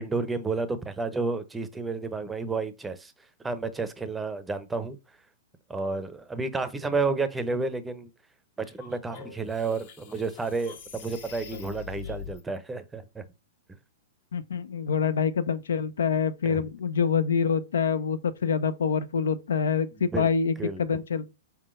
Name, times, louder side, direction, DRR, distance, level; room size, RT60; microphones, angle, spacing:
voice 1, 0.0-3.1 3.4-5.0 5.7-8.1 8.6-13.3 16.4-16.6 20.1-20.3 20.6-21.0, right 3 dB, 10° right, 0.6 m, -31 dB
sound 1, 8.6-12.4, left 7 dB, 55° left, 1.1 m, -43 dB
voice 2, 14.3-21.3, left 6 dB, 80° left, 0.5 m, -26 dB
4.3 x 3.7 x 2.5 m
hypercardioid pair, 125°, 0 cm